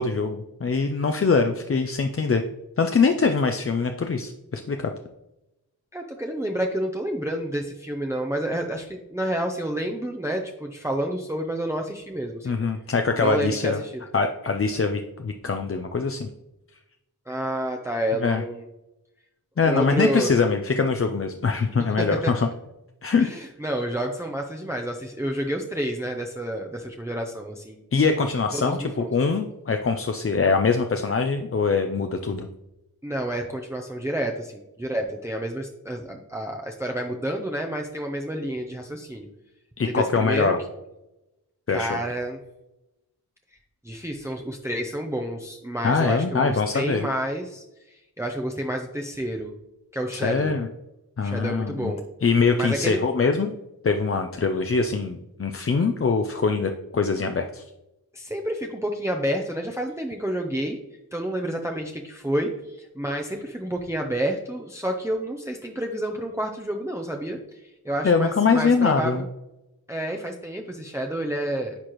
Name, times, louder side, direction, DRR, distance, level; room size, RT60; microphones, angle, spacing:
voice 1, 0.0-2.4 2.8-4.9 12.4-13.8 14.1-16.3 18.2-18.4 19.6-22.5 23.0-23.3 27.9-32.5 39.8-40.6 41.7-42.0 45.8-47.1 50.1-50.7 51.2-51.9 52.2-53.5 53.8-57.6 68.0-69.2, left 4 dB, 35° left, 5 dB, 0.5 m, -23 dB
voice 2, 5.9-12.6 13.2-14.0 17.3-18.6 19.6-20.3 21.5-21.6 22.0-22.3 23.2-27.8 28.5-29.1 33.0-39.3 39.9-40.5 41.7-42.4 43.8-49.5 49.9-50.6 51.2-52.0 52.6-53.0 58.1-60.8 61.1-69.3 69.9-71.8, right 1 dB, 5° right, 2 dB, 0.6 m, -29 dB
9.6 x 4.3 x 3.0 m, 0.92 s
wide cardioid pair, 75°, 38 cm